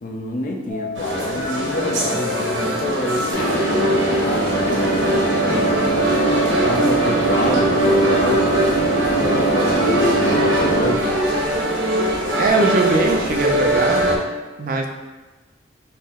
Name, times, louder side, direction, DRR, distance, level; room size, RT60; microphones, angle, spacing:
voice 1, 0.0-3.4 4.1-6.3 6.6-8.7 9.1-11.2, left 2 dB, 45° left, 1 dB, 0.5 m, -28 dB
sound 1, 0.7-11.6, left 5 dB, 25° right, 1.0 m, -39 dB
sound 2, 0.9-14.2, equal, 85° right, 0.8 m, -22 dB
sound 3, 3.3-10.9, right 2 dB, 70° left, 0.8 m, -21 dB
voice 2, 12.4-14.1 14.6-14.9, right 2 dB, 50° right, 2 dB, 0.4 m, -20 dB
4.3 x 2.0 x 3.6 m, 1.2 s
head